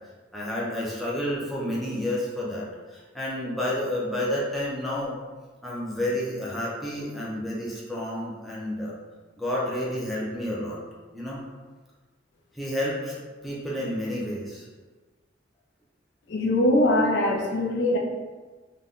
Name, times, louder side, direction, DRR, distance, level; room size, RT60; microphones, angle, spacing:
voice 1, 0.3-5.2 5.6-9.0 9.4-10.8 11.1-11.4 12.5-13.2 13.4-14.7, left 1 dB, ahead, -6 dB, 0.4 m, -30 dB
voice 2, 16.3-18.0, left 1 dB, 65° left, 0 dB, 0.4 m, -22 dB
2.6 x 2.2 x 3.4 m, 1.3 s
head